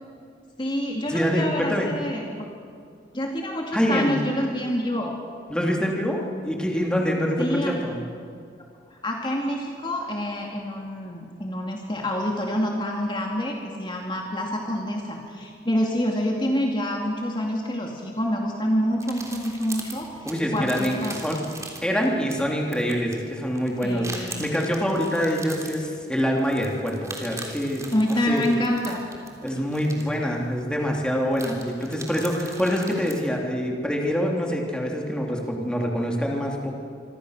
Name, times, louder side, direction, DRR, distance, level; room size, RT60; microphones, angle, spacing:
voice 1, 0.6-2.5 3.1-5.2 7.4-7.8 8.9-21.2 23.8-24.4 27.9-29.0, equal, 25° left, 0 dB, 2.4 m, -27 dB
voice 2, 1.1-1.9 3.7-4.2 5.5-8.0 20.2-21.4 21.8-27.8 28.2-28.4 29.4-36.7, equal, 5° left, -1 dB, 3.1 m, -25 dB
sound 1, 19.0-33.2, right 3 dB, 20° right, 3.4 m, -41 dB
27.0 x 24.5 x 6.6 m, 2.2 s
head